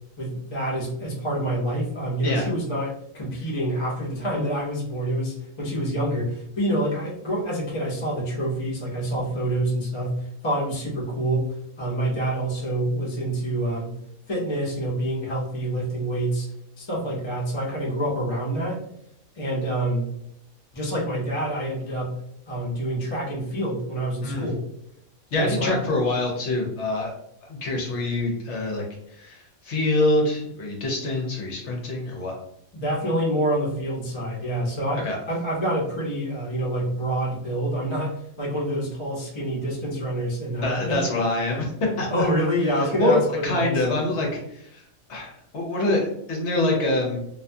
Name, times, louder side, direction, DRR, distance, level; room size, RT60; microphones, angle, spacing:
voice 1, 0.2-11.5 11.8-14.0 14.3-16.5 16.8-18.8 19.4-20.1 20.7-22.2 22.5-24.6 25.3-25.8 32.7-41.1 42.1-43.8, right 1 dB, 30° left, -4 dB, 0.5 m, -27 dB
voice 2, 25.3-27.1 27.5-28.8 29.1-32.4 35.0-35.2 40.6-42.3 43.0-44.8 45.1-47.2, left 2 dB, 65° left, -1 dB, 0.8 m, -25 dB
2.5 x 2.2 x 2.6 m, 0.75 s
omnidirectional pair, 1.5 m